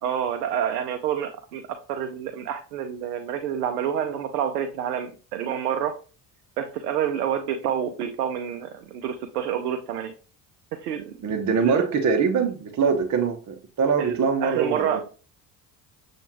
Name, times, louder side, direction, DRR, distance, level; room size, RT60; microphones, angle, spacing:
voice 1, 0.0-6.0 6.6-10.1 10.7-11.2 11.6-11.8 14.0-15.0, right 9 dB, 85° right, 6 dB, 0.6 m, -28 dB
voice 2, 11.2-15.0, right 5 dB, 40° right, 3 dB, 0.9 m, -23 dB
6.9 x 2.5 x 3.0 m, 0.36 s
hypercardioid pair, 55°, 46 cm